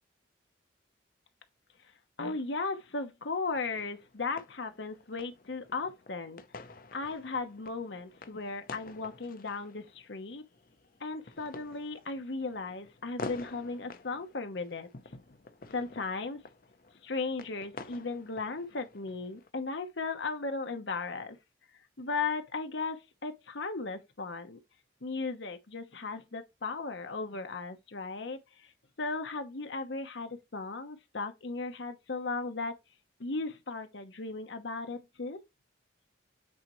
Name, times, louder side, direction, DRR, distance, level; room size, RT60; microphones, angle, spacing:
voice 1, 2.2-6.4 6.9-10.4 11.0-14.9 15.7-16.4 17.0-21.4 22.0-24.6 25.0-28.7 29.0-32.7 33.2-35.4, left 3 dB, 70° left, 1.0 m, -36 dB
sound 1, 3.5-19.5, left 3 dB, 50° left, 0.7 m, -49 dB
8.6 x 4.3 x 3.0 m
head